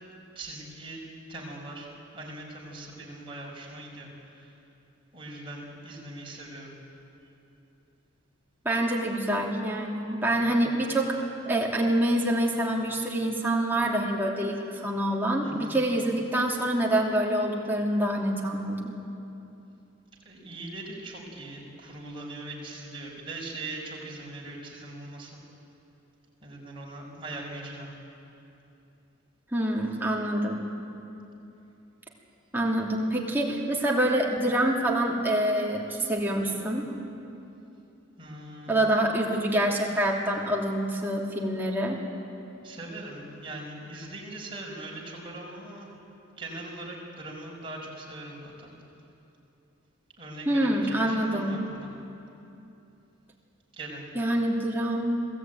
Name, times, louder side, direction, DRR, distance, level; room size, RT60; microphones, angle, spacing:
voice 1, 0.4-1.0 1.3-4.5 5.1-6.7 15.4-15.8 20.3-25.4 26.4-27.9 38.2-39.0 42.6-45.9 46.4-48.7 50.2-51.9 53.7-54.1, right 2 dB, 25° right, -2 dB, 5.3 m, -41 dB
voice 2, 8.6-18.9 29.5-30.6 32.5-36.8 38.7-42.0 50.5-51.6 54.1-55.1, right 1 dB, 10° right, -2 dB, 2.9 m, -26 dB
26.5 x 17.5 x 9.2 m, 2.8 s
head